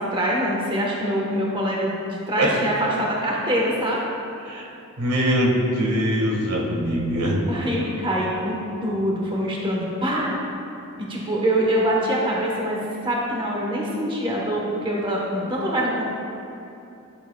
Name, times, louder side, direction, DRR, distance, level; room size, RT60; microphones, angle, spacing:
voice 1, 0.0-4.0 7.5-10.4 11.0-16.0, equal, 20° right, -3 dB, 1.0 m, -24 dB
voice 2, 5.0-7.4, equal, 85° right, -2 dB, 1.5 m, -22 dB
10.5 x 9.8 x 2.2 m, 2.7 s
head